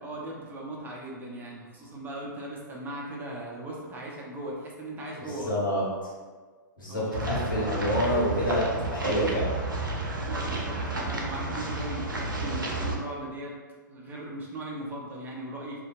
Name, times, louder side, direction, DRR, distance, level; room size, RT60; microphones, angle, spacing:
voice 1, 0.0-5.5 6.9-7.5 10.2-13.5 13.9-15.8, right 1 dB, 20° right, -3 dB, 0.5 m, -38 dB
voice 2, 5.4-6.1 6.8-9.6, equal, 85° left, -5 dB, 0.9 m, -27 dB
sound 1, 7.1-13.0, right 2 dB, 90° right, 0.5 m, -31 dB
2.6 x 2.2 x 2.5 m, 1.4 s
hypercardioid pair, 110°, 11 cm